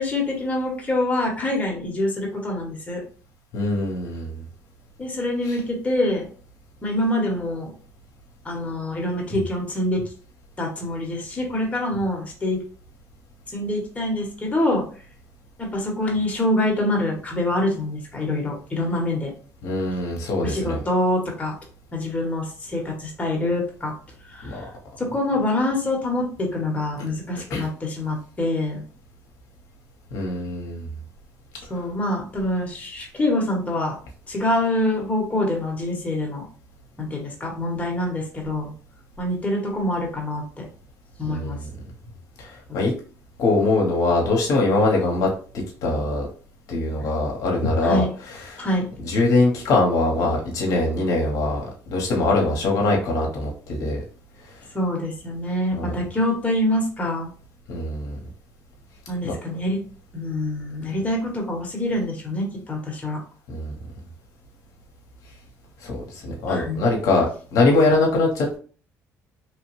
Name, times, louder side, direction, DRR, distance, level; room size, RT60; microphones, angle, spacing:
voice 1, 0.0-3.0 5.0-6.2 6.8-7.7 8.4-10.0 10.6-12.6 13.5-14.8 15.6-19.3 20.4-21.5 21.9-23.9 24.3-24.7 25.0-28.8 31.7-34.0 34.3-36.4 37.0-38.7 39.2-40.7 41.2-41.6 42.7-42.8 47.8-48.1 48.6-48.9 54.7-57.3 59.1-59.8 60.1-63.2 66.5-66.9, left 1 dB, 20° left, 0 dB, 1.0 m, -25 dB
voice 2, 3.5-4.4 5.5-5.6 19.6-20.8 24.4-24.7 27.5-27.6 30.1-30.9 41.3-41.7 42.4-42.9 43.4-45.3 45.8-46.3 46.7-48.6 49.0-54.0 55.7-55.9 57.7-58.2 59.2-59.3 63.5-63.7 65.8-68.6, left 2 dB, 70° left, 0 dB, 0.8 m, -22 dB
2.9 x 2.1 x 3.0 m, 0.42 s
cardioid pair, 90°, 6 cm